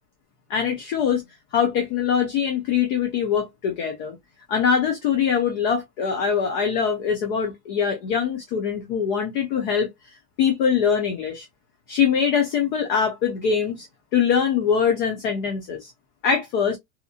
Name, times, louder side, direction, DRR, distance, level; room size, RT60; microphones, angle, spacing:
voice 1, 0.5-1.2 1.5-4.2 4.5-11.5 11.9-13.9 14.1-15.9 16.2-16.8, left 7 dB, 35° left, 0.6 m, -23 dB
2.8 x 2.4 x 2.4 m
supercardioid pair, 155°, 47 cm